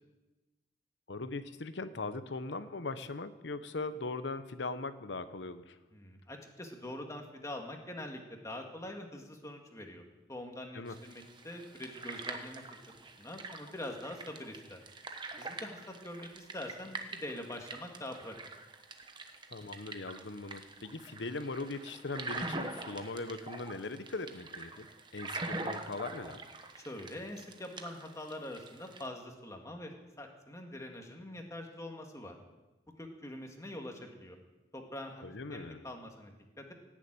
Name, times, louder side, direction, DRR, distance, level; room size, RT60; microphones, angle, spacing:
voice 1, 1.1-5.8 10.7-10.9 19.5-24.9 25.1-26.4 35.2-35.9, left 3 dB, 85° left, 12 dB, 0.9 m, -40 dB
voice 2, 5.9-10.0 10.3-12.8 13.2-14.8 15.4-18.4 26.8-32.4 33.0-34.4 34.7-36.7, left 1 dB, 20° left, 3 dB, 1.8 m, -44 dB
sound 1, 10.9-29.1, right 3 dB, 25° right, 1.1 m, -44 dB
17.5 x 7.4 x 8.8 m, 1.1 s
head